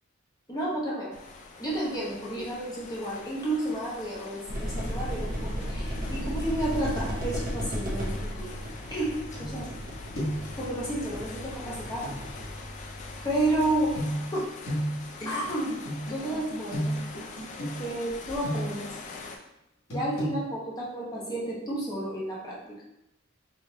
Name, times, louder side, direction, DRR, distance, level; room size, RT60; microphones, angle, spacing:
voice 1, 0.5-1.1 1.6-8.6 8.9-9.7 10.6-12.1 13.2-13.9 14.3-14.5 15.2-15.8 16.1-17.0 17.8-18.9 19.9-22.6, right 1 dB, 20° left, -6 dB, 0.8 m, -31 dB
sound 1, 1.1-19.4, left 3 dB, 35° left, 0.3 m, -44 dB
sound 2, 4.5-14.0, equal, 40° right, 0.7 m, -35 dB
sound 3, 9.4-9.9 10.2-10.6 12.0-12.2 13.9-18.9 19.9-20.3, equal, 75° left, 1.3 m, -33 dB
3.9 x 2.5 x 3.0 m, 0.86 s
head